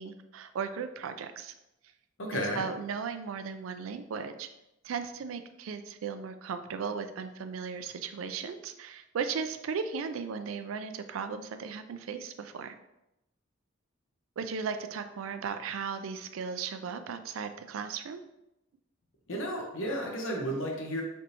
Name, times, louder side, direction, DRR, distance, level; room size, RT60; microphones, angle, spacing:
voice 1, 0.0-1.5 2.3-4.5 4.8-12.8 14.4-18.2, right 6 dB, 90° right, 9 dB, 0.4 m, -36 dB
voice 2, 2.2-2.6 19.3-21.0, equal, 70° left, 0 dB, 0.8 m, -33 dB
3.9 x 3.4 x 2.8 m, 0.89 s
head